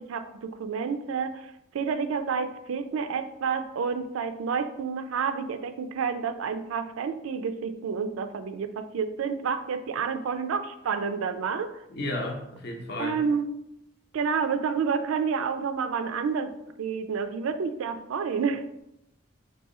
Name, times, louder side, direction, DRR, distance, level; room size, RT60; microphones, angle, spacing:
voice 1, 0.0-11.8 13.0-13.5 14.1-16.5 16.8-18.7, right 6 dB, 85° right, 10 dB, 0.4 m, -29 dB
voice 2, 11.9-13.2, left 1 dB, 50° left, 1 dB, 0.7 m, -33 dB
4.1 x 2.7 x 3.6 m, 0.81 s
head